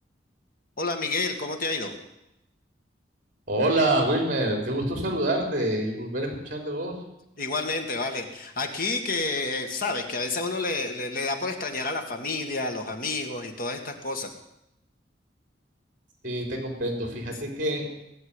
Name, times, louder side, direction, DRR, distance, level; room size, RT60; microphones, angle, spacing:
voice 1, 0.8-1.9 7.4-14.3, left 3 dB, 50° left, 5 dB, 2.1 m, -29 dB
voice 2, 3.5-7.0 16.2-17.8, right 1 dB, 45° right, 3 dB, 3.8 m, -26 dB
18.5 x 7.3 x 9.8 m, 0.87 s
head